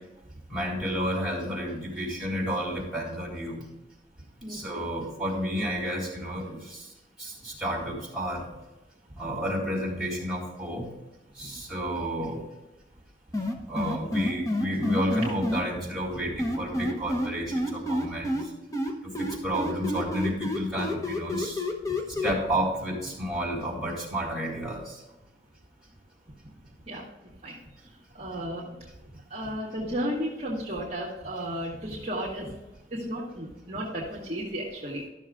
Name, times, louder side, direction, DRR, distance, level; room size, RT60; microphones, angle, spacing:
voice 1, 0.5-3.7 4.5-6.9 7.2-8.5 9.2-10.9 11.4-12.4 13.7-18.5 19.0-21.6 22.2-25.0, equal, ahead, -6 dB, 4.1 m, -31 dB
sound 1, 13.3-15.6 16.4-18.4 18.7-22.3, left 1 dB, 20° left, 1.1 m, -28 dB
voice 2, 28.1-28.6 29.3-32.5 32.9-35.0, equal, 35° right, -6 dB, 2.1 m, -33 dB
13.5 x 6.6 x 3.7 m, 1.0 s
head